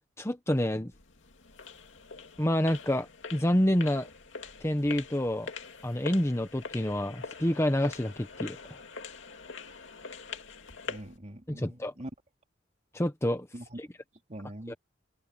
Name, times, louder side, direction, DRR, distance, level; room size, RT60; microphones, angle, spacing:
voice 1, 0.2-0.9 2.4-4.1 4.6-5.5 5.8-8.6 11.5-11.9 12.9-13.5 13.8-13.9 14.7-14.8, left 1 dB, 15° left, 1.0 m, -28 dB
sound 1, 0.9-11.2, left 4 dB, 70° left, 2.5 m, -44 dB
voice 2, 10.9-12.1 13.5-13.8 14.3-14.8, right 1 dB, 35° right, 3.4 m, -43 dB
head